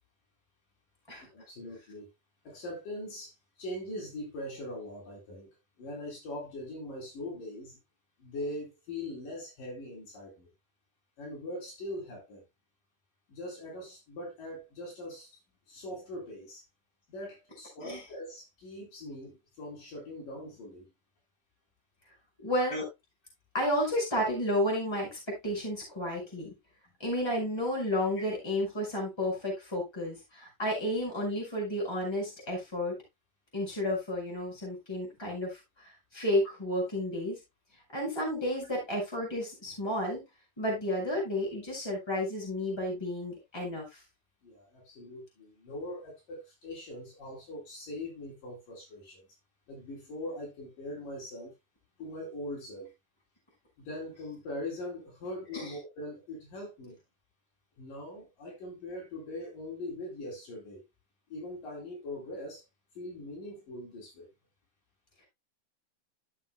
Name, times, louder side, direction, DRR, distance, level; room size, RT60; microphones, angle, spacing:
voice 1, 1.3-2.1 2.4-3.3 3.6-5.5 5.8-7.8 8.2-10.5 11.2-12.4 13.3-15.3 15.7-16.6 17.1-20.9 22.7-22.8 28.2-28.3 44.4-49.2 49.7-51.5 52.0-52.9 53.8-57.0 57.8-60.8 61.3-62.6 63.0-64.3, left 1 dB, 55° left, 5.4 m, -41 dB
voice 2, 22.4-22.8 23.5-26.5 27.0-33.0 33.5-37.4 37.9-40.2 40.6-43.9 55.5-55.7, left 1 dB, 5° left, 5.4 m, -32 dB
14.5 x 7.4 x 2.2 m
omnidirectional pair, 4.6 m